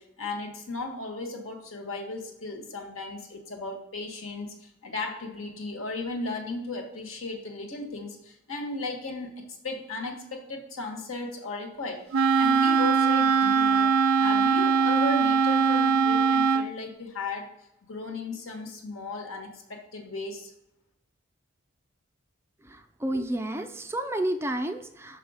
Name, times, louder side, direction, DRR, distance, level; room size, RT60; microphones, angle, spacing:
voice 1, 0.0-9.3 9.6-12.0 12.4-17.5 17.8-20.5, left 3 dB, 75° left, 3 dB, 1.4 m, -36 dB
Wind instrument woodwind instrument, 12.1-16.7, right 5 dB, 80° right, 0.4 m, -21 dB
voice 2, 22.6-25.2, right 1 dB, 10° right, 7 dB, 0.3 m, -31 dB
6.0 x 4.8 x 5.0 m, 0.84 s
head